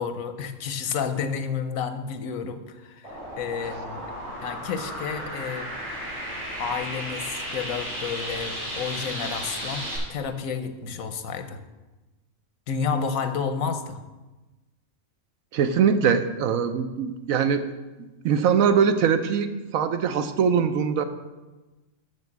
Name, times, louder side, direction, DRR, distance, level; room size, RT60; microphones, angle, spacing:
voice 1, 0.0-4.1 4.4-5.7 6.6-11.6 12.7-14.0, left 6 dB, 85° left, 9 dB, 1.2 m, -30 dB
sound 1, 3.0-10.0, equal, 30° right, 3.8 m, -34 dB
voice 2, 15.5-17.6 18.2-21.0, right 7 dB, 85° right, 9 dB, 1.1 m, -22 dB
6.8 x 6.7 x 7.3 m, 1.1 s
omnidirectional pair, 1.4 m